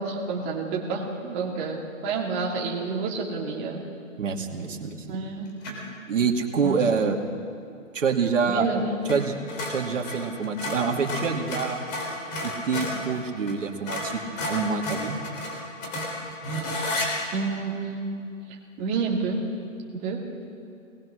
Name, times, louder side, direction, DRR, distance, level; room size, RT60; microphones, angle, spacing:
voice 1, 0.0-3.8 5.1-5.5 6.6-6.8 8.5-9.0 17.3-18.0 18.5-19.4 19.9-20.2, right 4 dB, 20° right, -2 dB, 2.3 m, -29 dB
voice 2, 4.2-5.2 6.1-7.2 7.9-8.7 9.1-9.3 9.7-11.8 12.4-14.2 14.5-15.2, right 5 dB, 70° right, 1 dB, 2.6 m, -26 dB
sound 1, 5.6-5.9 9.0-9.2 9.5-13.0 13.5-13.6 13.9-17.1, left 1 dB, 30° left, 3.9 m, -31 dB
24.0 x 20.0 x 6.4 m, 2.5 s
hypercardioid pair, 160°, 40 cm